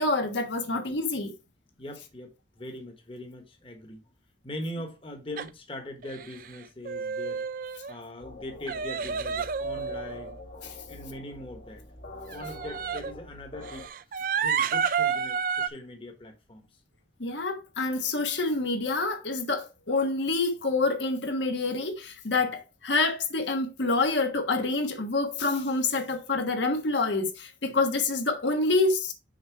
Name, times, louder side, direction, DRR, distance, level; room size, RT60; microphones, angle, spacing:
voice 1, 0.0-1.3 17.2-29.1, left 3 dB, 80° left, 1.3 m, -27 dB
voice 2, 1.8-4.0 4.4-7.4 7.9-10.4 10.9-11.8 12.3-13.9 14.4-16.7 22.4-22.5 27.7-27.8, left 1 dB, 30° left, 1.2 m, -41 dB
sound 1, 5.4-5.5 6.0-6.6 6.8-7.9 8.7-10.4 12.3-13.1 13.6-15.7, right 6 dB, 50° right, 0.4 m, -30 dB
sound 2, 8.2-13.9, left 1 dB, 60° left, 1.6 m, -45 dB
6.5 x 4.3 x 4.6 m
head